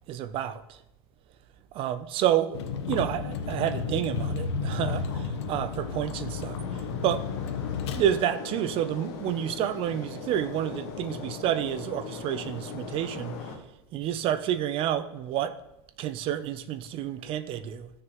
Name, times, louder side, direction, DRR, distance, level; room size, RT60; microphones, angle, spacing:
voice 1, 0.1-0.8 1.7-2.6 2.9-7.2 7.9-13.4 13.9-15.6 16.0-17.9, right 10 dB, 40° right, 0.6 m, -29 dB
Vehicle, 2.5-8.0, left 5 dB, 85° left, 1.1 m, -32 dB
sound 1, 4.4-13.6, left 5 dB, 70° left, 1.9 m, -41 dB
14.5 x 6.5 x 3.1 m
supercardioid pair, 135°, 14 cm